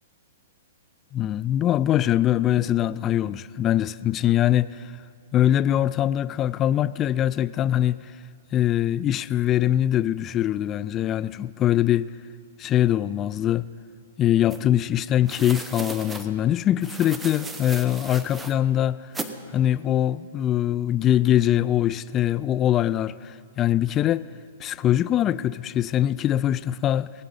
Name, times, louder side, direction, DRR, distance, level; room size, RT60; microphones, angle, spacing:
voice 1, 1.1-4.8 5.3-8.0 8.5-12.1 12.6-13.7 14.2-19.0 19.5-24.3 24.6-27.1, left 11 dB, 25° left, 0.3 m, -22 dB
sound 1, 14.5-14.6 15.2-16.3 16.8-18.5 19.1-19.3, right 3 dB, 10° right, 0.8 m, -36 dB
20.0 x 8.9 x 5.5 m
hypercardioid pair, 125°, 0 cm